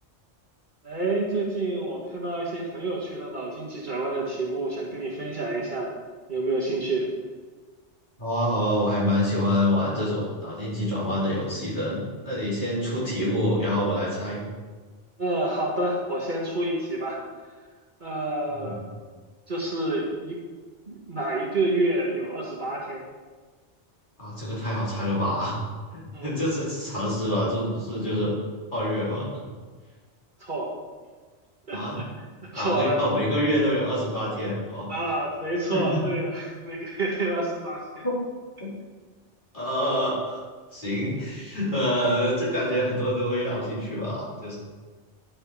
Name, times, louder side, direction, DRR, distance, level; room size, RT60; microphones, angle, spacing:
voice 1, 0.8-5.9 6.3-7.1 15.2-17.2 18.0-18.8 19.5-20.4 20.9-23.0 26.1-26.4 30.4-30.7 31.7-32.0 32.4-33.0 34.9-38.0, right 2 dB, 40° right, -4 dB, 1.5 m, -28 dB
voice 2, 8.2-14.4 18.5-18.8 24.2-25.5 25.9-28.3 28.7-29.4 31.7-32.0 32.5-34.9 35.7-36.0 38.0-38.2 38.6-38.7 39.5-40.4 40.7-44.6, equal, 40° left, -9 dB, 3.4 m, -26 dB
11.0 x 5.3 x 4.7 m, 1.4 s
omnidirectional pair, 1.2 m